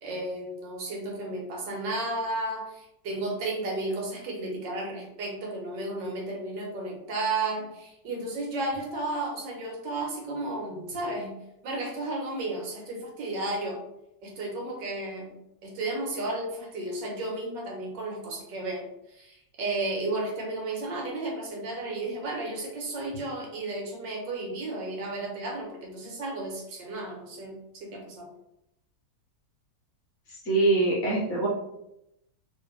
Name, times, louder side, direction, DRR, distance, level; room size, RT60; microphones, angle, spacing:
voice 1, 0.0-11.3 11.6-13.8 14.2-15.3 15.6-28.3, right 2 dB, 75° right, -1 dB, 1.6 m, -33 dB
voice 2, 30.3-31.5, right 2 dB, 50° left, -5 dB, 1.4 m, -24 dB
3.5 x 3.2 x 3.2 m, 0.83 s
omnidirectional pair, 2.0 m